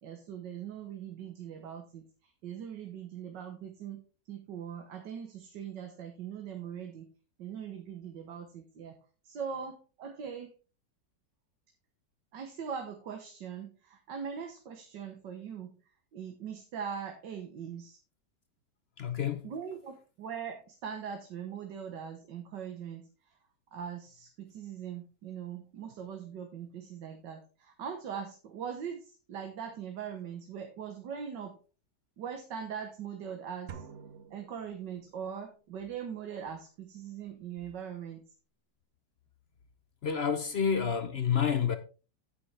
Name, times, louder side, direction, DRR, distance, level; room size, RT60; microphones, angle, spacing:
voice 1, 0.0-7.1 7.4-9.0 9.2-10.5 12.3-15.8 16.1-18.0 19.4-23.4 23.7-31.6 32.2-33.8 34.3-38.2, right 7 dB, 80° right, 1.8 m, -41 dB
voice 2, 19.0-19.5 40.0-41.8, left 7 dB, 55° left, 0.7 m, -29 dB
sound 1, 33.7-35.4, right 7 dB, 55° right, 0.9 m, -48 dB
9.4 x 8.8 x 3.3 m
omnidirectional pair, 1.9 m